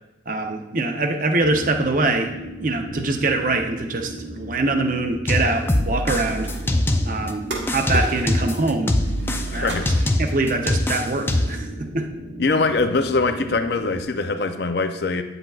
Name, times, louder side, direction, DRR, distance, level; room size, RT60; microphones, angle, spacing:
voice 1, 0.3-2.3 2.6-6.5 7.0-7.4 7.7-9.0 9.5-9.9 10.2-12.1, right 2 dB, 45° right, 4 dB, 0.7 m, -23 dB
sound 1, 1.4-14.0, equal, 65° right, 1.1 m, -37 dB
sound 2, 5.3-7.3 7.7-11.7, left 1 dB, 10° left, 0.4 m, -23 dB
sound 3, 6.3-6.8 7.5-8.5 8.8-9.4 9.7-10.4, right 2 dB, 80° right, 1.3 m, -34 dB
voice 2, 9.3-9.9 12.4-15.2, left 3 dB, 60° left, 8 dB, 0.5 m, -23 dB
8.9 x 7.9 x 2.4 m, 0.99 s
head